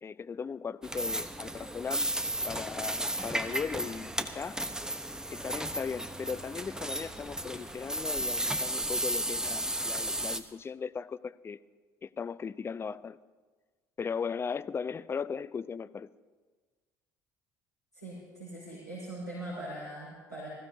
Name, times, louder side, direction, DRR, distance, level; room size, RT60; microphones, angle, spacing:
voice 1, 0.0-2.1 2.5-4.6 5.3-11.6 12.0-13.2 14.0-16.1, left 6 dB, 25° left, 16 dB, 0.5 m, -37 dB
sound 1, 0.8-10.4, right 1 dB, 5° right, 0.9 m, -34 dB
voice 2, 17.9-20.5, right 1 dB, 85° left, -11 dB, 4.3 m, -41 dB
20.5 x 15.0 x 2.8 m, 1.4 s
figure-of-eight pair, 55°, 9 cm